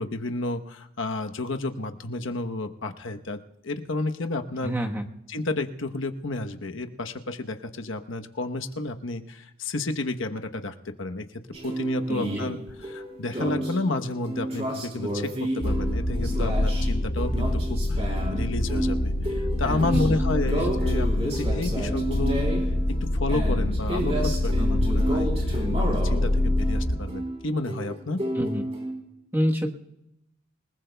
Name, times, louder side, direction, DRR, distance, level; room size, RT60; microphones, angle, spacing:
voice 1, 0.0-4.7 5.3-22.4 23.0-28.2, left 2 dB, 65° left, 6 dB, 1.0 m, -31 dB
voice 2, 4.6-5.1 12.1-12.5 19.8-20.2 20.5-20.7 28.3-28.7 29.3-29.7, equal, 10° right, 2 dB, 1.2 m, -28 dB
sound 1, 11.5-28.9, right 1 dB, 30° right, 3.4 m, -31 dB
sound 2, 15.6-27.0, left 1 dB, 80° left, 1.4 m, -26 dB
27.5 x 19.0 x 2.3 m, 0.85 s
head